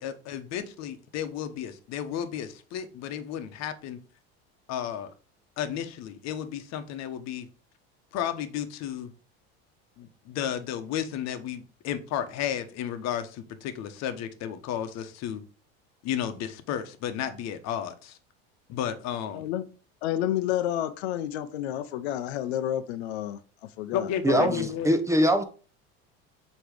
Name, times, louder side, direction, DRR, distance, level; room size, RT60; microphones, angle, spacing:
voice 1, 0.0-4.0 4.7-5.1 5.6-7.5 8.1-9.1 10.0-15.4 16.0-18.2 18.7-19.5 23.9-25.0, left 9 dB, 55° left, 1.1 m, -33 dB
voice 2, 19.3-19.6 20.0-23.4 23.8-24.7, left 12 dB, 85° left, 0.8 m, -30 dB
voice 3, 24.2-25.4, right 1 dB, 10° right, 0.9 m, -22 dB
7.9 x 3.2 x 5.1 m
supercardioid pair, 105°, 31 cm